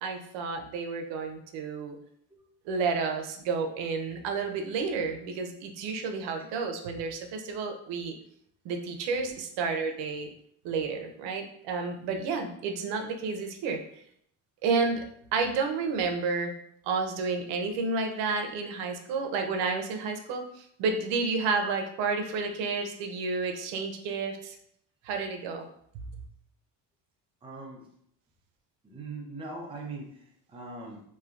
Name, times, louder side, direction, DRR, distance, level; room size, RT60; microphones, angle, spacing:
voice 1, 0.0-2.0 2.7-8.1 8.6-10.3 10.6-13.8 14.6-15.1 15.3-16.5 16.8-24.6 25.0-25.7, right 4 dB, 85° right, 4 dB, 0.6 m, -31 dB
voice 2, 27.4-27.9 28.8-31.0, right 3 dB, 15° right, -2 dB, 0.5 m, -41 dB
3.2 x 2.7 x 2.4 m, 0.68 s
cardioid pair, 140°, 42 cm